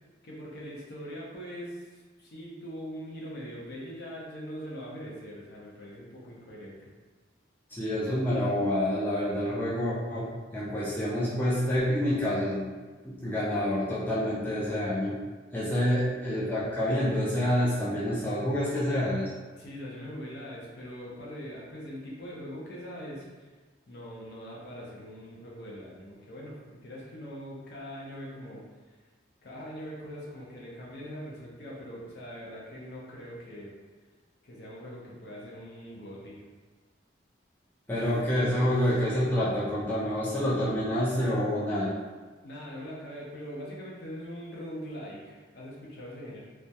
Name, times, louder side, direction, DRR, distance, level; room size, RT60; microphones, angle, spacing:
voice 1, 0.2-6.9 19.5-23.5 23.9-28.6 29.4-33.7 34.4-36.4 42.4-46.4, equal, 55° left, -4 dB, 0.6 m, -42 dB
voice 2, 7.7-12.7 13.0-15.2 15.5-19.3 37.9-41.9, equal, 10° left, -8 dB, 0.3 m, -28 dB
2.2 x 2.1 x 2.7 m, 1.3 s
head